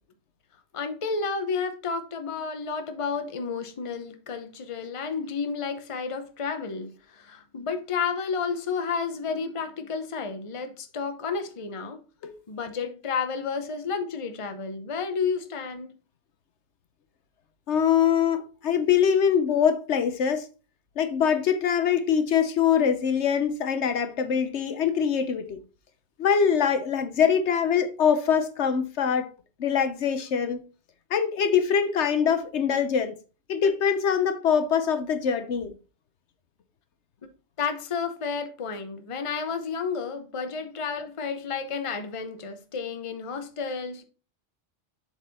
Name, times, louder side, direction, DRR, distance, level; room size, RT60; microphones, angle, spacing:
voice 1, 0.7-12.0 12.5-15.9 37.6-44.0, left 5 dB, 30° left, 0.8 m, -31 dB
voice 2, 17.7-20.5 21.0-25.6 26.2-29.3 29.6-30.6 31.1-33.1 33.5-35.7, left 7 dB, 70° left, 1.0 m, -23 dB
7.5 x 4.6 x 4.1 m
omnidirectional pair, 1.2 m